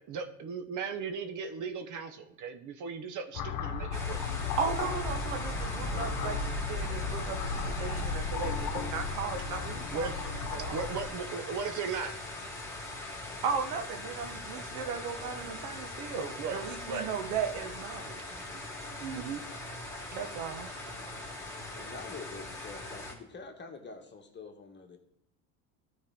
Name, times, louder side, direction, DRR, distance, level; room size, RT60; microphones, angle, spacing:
voice 1, 0.0-4.3 5.9-6.0 9.9-10.1 10.7-12.1 16.4-16.6 16.9-17.1 18.9-19.4, right 5 dB, 45° right, 8 dB, 0.9 m, -37 dB
sound 1, 3.3-11.1, left 4 dB, 45° left, 1.1 m, -35 dB
sound 2, 3.9-23.1, left 2 dB, 5° left, 2.2 m, -41 dB
voice 2, 4.6-10.1 10.5-10.9 13.4-18.2 20.1-20.7, right 6 dB, 70° right, 6 dB, 1.2 m, -36 dB
voice 3, 21.7-25.0, left 4 dB, 25° left, 4 dB, 1.4 m, -46 dB
12.5 x 4.5 x 3.6 m, 0.77 s
hypercardioid pair, 80°, 43 cm